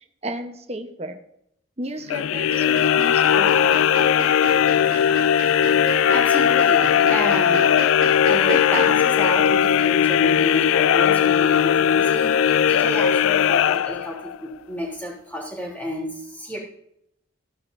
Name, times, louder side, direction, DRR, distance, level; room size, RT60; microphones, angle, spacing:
voice 1, 0.2-1.2 1.8-3.9, right 1 dB, 30° right, 6 dB, 1.0 m, -33 dB
sound 1, 2.1-14.4, left 9 dB, 80° left, 0.3 m, -18 dB
sound 2, 2.4-8.9, right 3 dB, 80° right, 1.5 m, -34 dB
voice 2, 6.1-16.6, equal, 10° left, -4 dB, 3.3 m, -31 dB
15.5 x 9.5 x 2.7 m, 0.76 s
head